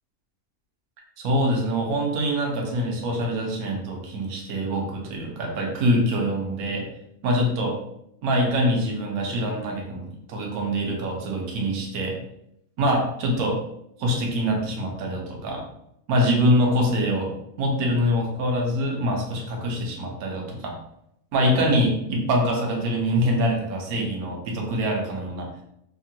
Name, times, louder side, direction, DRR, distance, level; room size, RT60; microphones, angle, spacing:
voice 1, 1.2-6.8 7.2-7.8 8.2-12.1 12.8-13.6 14.0-15.7 16.1-17.3 17.6-20.7 21.3-25.5, equal, 80° right, 0 dB, 1.2 m, -24 dB
3.6 x 2.1 x 2.7 m, 0.77 s
omnidirectional pair, 1.5 m